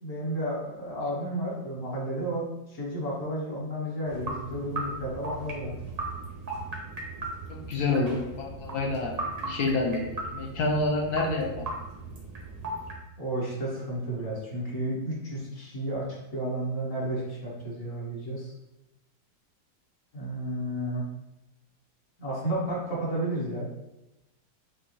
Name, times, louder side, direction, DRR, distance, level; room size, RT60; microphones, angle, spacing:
voice 1, 0.0-5.7 13.2-16.1 16.3-18.5 20.1-21.0 22.2-23.7, right 1 dB, 50° left, -6 dB, 1.6 m, -32 dB
sound 1, 4.0-13.0, right 2 dB, 55° right, 0.4 m, -37 dB
voice 2, 7.5-10.0 10.3-11.7, left 2 dB, 65° left, 0 dB, 1.2 m, -28 dB
6.1 x 2.7 x 3.0 m, 0.94 s
omnidirectional pair, 1.9 m